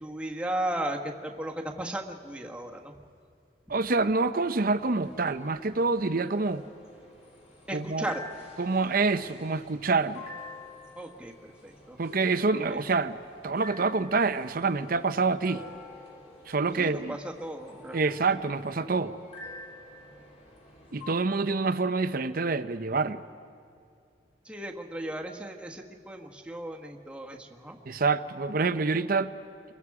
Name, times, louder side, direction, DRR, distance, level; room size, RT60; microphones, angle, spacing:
voice 1, 0.0-2.9 7.7-8.4 10.9-12.0 12.7-12.8 16.8-18.0 24.4-27.8, right 1 dB, 5° right, 1.4 m, -36 dB
voice 2, 3.7-6.6 7.7-8.1 8.6-10.3 12.0-13.2 13.4-15.6 16.5-17.2 17.9-19.1 20.9-23.2 27.9-29.3, right 3 dB, 55° right, 0.7 m, -27 dB
sound 1, 4.4-21.1, left 2 dB, 35° left, 3.4 m, -49 dB
29.0 x 22.0 x 4.9 m
head